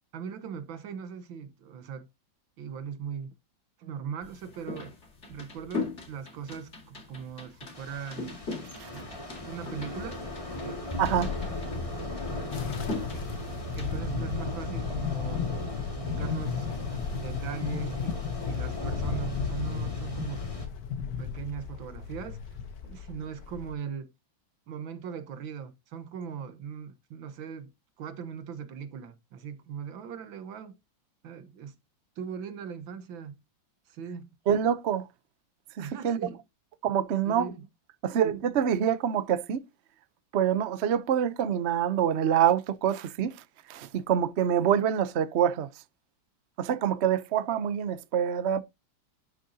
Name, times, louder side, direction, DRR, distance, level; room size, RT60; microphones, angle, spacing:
voice 1, 0.1-2.1 2.6-3.3 3.8-4.9 5.3-8.4 8.9-9.0 9.4-10.2 10.6-10.8 13.1-13.3 13.8-15.5 15.9-18.2 18.5-20.5 21.2-22.4 22.8-24.1 24.7-27.7 28.0-30.8 31.2-31.8 32.2-33.4 33.9-34.3 35.8-36.4 37.3-37.7, right 7 dB, 80° right, 1.8 m, -39 dB
sound 1, 4.2-13.9, left 3 dB, 35° left, 2.4 m, -40 dB
Thunder / Rain, 7.7-20.7, left 2 dB, 15° left, 2.3 m, -37 dB
voice 2, 11.0-11.3 34.5-35.1 36.0-36.2 36.8-37.5 38.0-39.6 40.3-43.3 43.7-45.7 46.6-48.6, right 9 dB, 65° right, 0.6 m, -26 dB
sound 2, 12.5-23.7, left 7 dB, 55° left, 1.5 m, -35 dB
11.5 x 6.4 x 2.8 m
omnidirectional pair, 2.1 m